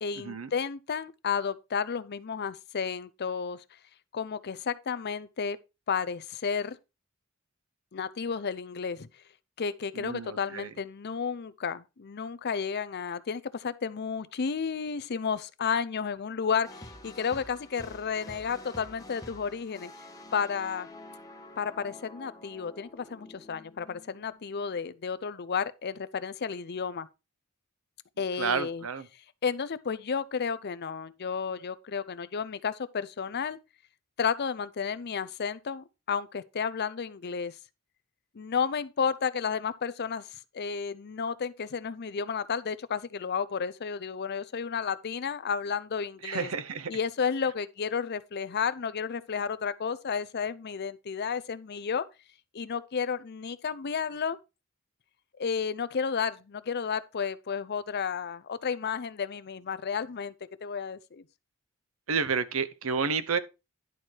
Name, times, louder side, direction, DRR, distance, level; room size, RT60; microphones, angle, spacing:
voice 1, 0.0-3.6 4.1-5.6 5.9-6.8 7.9-9.1 9.6-19.9 20.3-20.9 21.6-27.1 28.2-28.9 29.4-33.6 34.2-37.6 38.3-46.5 46.9-52.0 52.5-54.4 55.4-60.3 60.6-61.2, left 6 dB, 50° left, 0.6 m, -32 dB
voice 2, 10.0-10.7 28.4-29.1 46.2-46.9 62.1-63.4, right 5 dB, 75° right, 0.8 m, -30 dB
sound 1, 16.6-24.8, left 1 dB, 15° left, 1.5 m, -48 dB
11.0 x 4.4 x 4.6 m
head